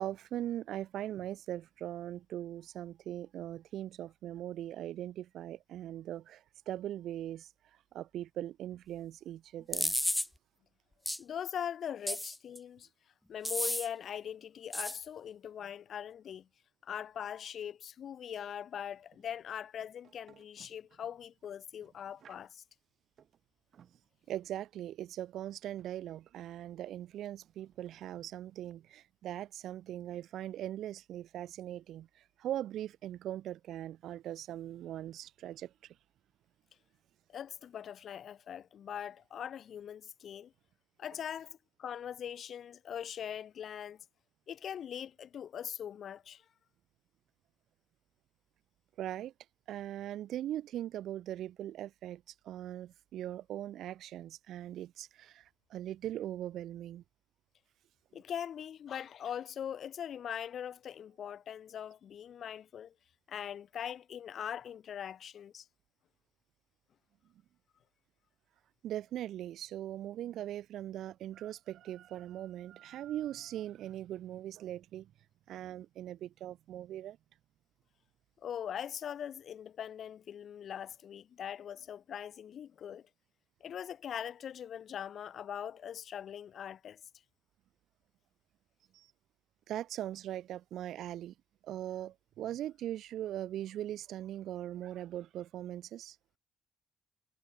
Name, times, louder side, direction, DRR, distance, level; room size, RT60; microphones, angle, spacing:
voice 1, 0.0-7.5 7.9-10.0 24.3-35.9 49.0-49.3 49.7-57.0 68.8-75.1 75.5-77.2 88.9-89.1 89.7-91.3 91.6-96.2, right 12 dB, 70° right, 1.4 m, -40 dB
sound 1, 9.7-10.3 11.1-11.2 12.1-12.6 13.4-13.9 14.7-15.0, left 1 dB, 5° left, 0.5 m, -32 dB
voice 2, 11.2-12.9 13.3-16.5 16.8-22.6 37.3-40.5 41.0-44.0 44.5-46.5 58.1-62.9 63.3-65.7 78.4-83.1 83.6-87.0, left 9 dB, 55° left, 1.9 m, -41 dB
sound 2, 18.7-28.7, right 9 dB, 55° right, 4.1 m, -67 dB
cardioid pair, 125°, 0 cm